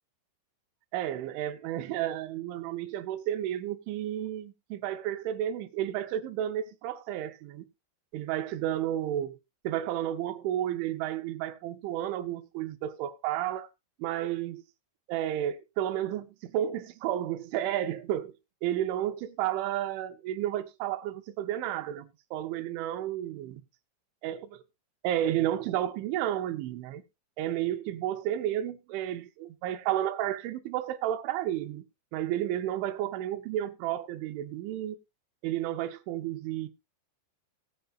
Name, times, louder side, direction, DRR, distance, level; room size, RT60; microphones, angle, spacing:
voice 1, 0.9-7.7 8.1-9.4 9.7-13.7 14.0-14.6 15.1-18.3 18.6-23.6 24.2-24.5 25.0-27.0 27.4-31.8 32.1-35.0 35.4-36.7, right 12 dB, 85° right, 3.4 m, -32 dB
19.5 x 8.1 x 2.4 m
omnidirectional pair, 5.3 m